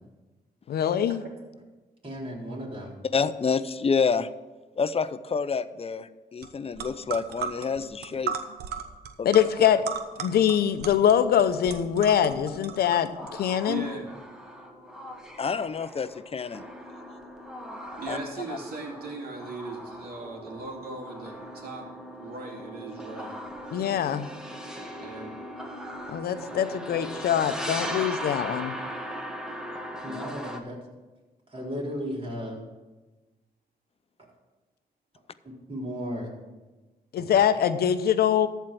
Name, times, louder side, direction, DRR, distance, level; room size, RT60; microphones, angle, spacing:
voice 1, 0.7-1.2 9.2-9.8 10.2-13.9 23.7-24.3 26.1-28.8 37.1-38.5, left 9 dB, 80° left, 10 dB, 0.8 m, -23 dB
voice 2, 2.0-2.9 30.0-30.8 31.5-32.6 35.4-36.3 37.2-37.3, equal, 35° right, -4 dB, 4.2 m, -35 dB
voice 3, 3.1-4.3 4.8-8.4 9.2-9.3 9.7-9.8 15.4-16.6 18.1-18.2 18.5-18.6 30.1-30.2, left 5 dB, 40° left, 14 dB, 0.6 m, -28 dB
sound 1, 6.4-6.5 6.7-13.3, right 7 dB, 90° right, 0.9 m, -36 dB
sound 2, 13.2-30.6, equal, 5° right, 1.5 m, -39 dB
voice 4, 13.7-14.0 18.0-21.9 22.2-23.3 25.0-25.4, right 3 dB, 70° right, 0 dB, 2.7 m, -38 dB
14.0 x 4.6 x 7.5 m, 1.2 s
cardioid pair, 65°, 16 cm